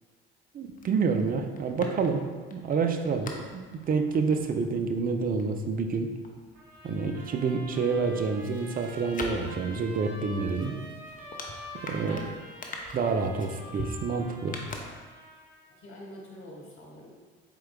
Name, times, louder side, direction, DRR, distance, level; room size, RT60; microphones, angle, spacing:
voice 1, 0.5-2.2 2.5-6.1 6.8-10.7 11.8-12.2 12.9-14.6, right 5 dB, 30° right, 5 dB, 0.4 m, -28 dB
sound 1, 0.6-7.2 7.5-15.5 15.7-15.8, left 2 dB, 25° left, 0.6 m, -44 dB
Trumpet, 6.5-15.7, equal, 65° right, 1.2 m, -46 dB
voice 2, 15.7-17.1, left 1 dB, 45° left, -3 dB, 1.4 m, -45 dB
4.3 x 3.7 x 2.3 m, 1.4 s
hypercardioid pair, 65°, 31 cm